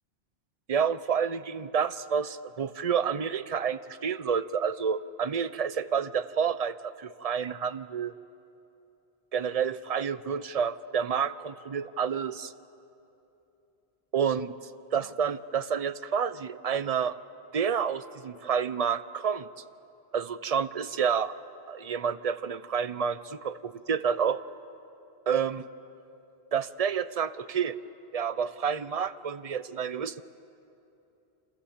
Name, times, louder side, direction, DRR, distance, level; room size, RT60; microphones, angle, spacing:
voice 1, 0.7-8.2 9.3-12.5 14.1-14.5 14.9-17.2 17.5-19.5 20.1-21.3 21.7-24.4 25.3-25.6 26.5-27.8 28.1-30.2, right 7 dB, 40° right, 14 dB, 0.7 m, -29 dB
29.0 x 26.5 x 7.3 m, 2.8 s
omnidirectional pair, 1.1 m